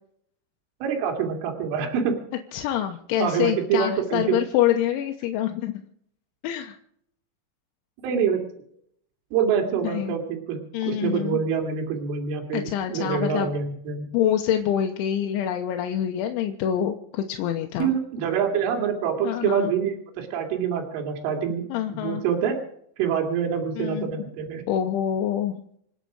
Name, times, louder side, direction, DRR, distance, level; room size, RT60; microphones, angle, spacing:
voice 1, 0.8-2.2 3.2-4.4 8.0-8.4 9.3-14.1 17.8-21.6 21.9-22.6 23.0-24.6, right 7 dB, 80° right, 3 dB, 4.9 m, -26 dB
voice 2, 2.5-5.8 6.4-6.8 9.8-10.2 10.7-11.4 12.5-13.5 14.1-17.9 19.2-19.7 21.7-22.2 23.8-24.1 24.7-25.6, left 10 dB, 85° left, 3 dB, 3.4 m, -26 dB
27.0 x 9.1 x 5.0 m, 0.67 s
omnidirectional pair, 5.5 m